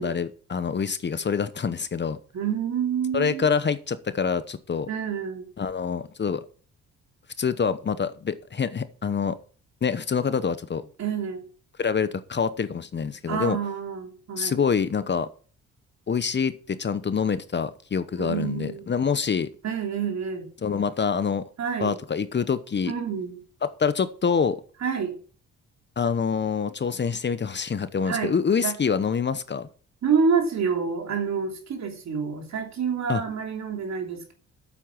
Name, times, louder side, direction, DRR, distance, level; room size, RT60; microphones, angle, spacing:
voice 1, 0.0-2.2 3.1-4.9 5.6-6.5 7.4-9.4 9.8-10.8 11.8-13.6 14.4-15.3 16.1-19.5 20.6-21.5 21.8-22.9 23.6-24.6 26.0-29.7 33.1-33.2, left 6 dB, 35° left, 0.9 m, -26 dB
voice 2, 2.3-3.5 4.9-5.5 11.0-11.4 13.3-14.7 18.2-19.0 19.6-20.5 21.6-21.9 22.9-23.4 24.8-25.1 28.0-28.7 30.0-34.3, right 6 dB, 60° right, 3.0 m, -28 dB
8.7 x 7.7 x 6.0 m
cardioid pair, 70°, 31 cm